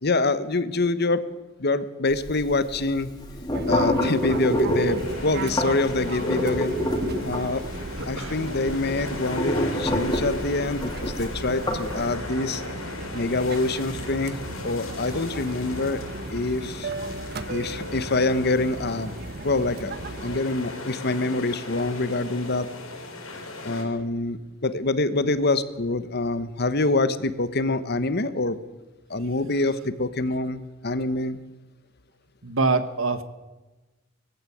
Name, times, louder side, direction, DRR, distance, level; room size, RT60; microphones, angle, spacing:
voice 1, 0.0-1.2 1.6-3.1 3.7-6.8 7.2-7.6 8.1-12.6 13.1-16.0 16.3-16.9 17.5-19.1 19.4-19.9 20.2-22.7 23.6-28.6 29.1-31.4, left 2 dB, 50° left, 13 dB, 1.2 m, -25 dB
sound 1, 2.1-12.1, equal, 20° left, 3.3 m, -27 dB
Fixed-wing aircraft airplane, 3.5-20.4, right 2 dB, 50° right, 1.1 m, -36 dB
sound 2, 4.0-23.8, left 2 dB, 90° left, 5.8 m, -38 dB
voice 2, 8.0-8.3 32.4-33.2, right 3 dB, 75° right, 12 dB, 1.5 m, -25 dB
20.0 x 15.5 x 8.6 m, 1.2 s
head